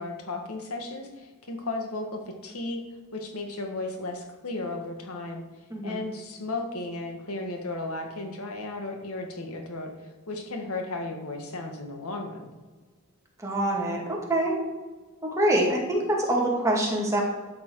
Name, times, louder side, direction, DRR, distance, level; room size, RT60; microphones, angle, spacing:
voice 1, 0.0-2.8 3.1-5.4 5.8-9.9 10.3-12.5, left 2 dB, 85° left, 3 dB, 1.7 m, -34 dB
voice 2, 13.4-14.6 15.3-17.2, right 1 dB, 15° right, -2 dB, 2.3 m, -25 dB
12.5 x 8.5 x 4.7 m, 1.4 s
head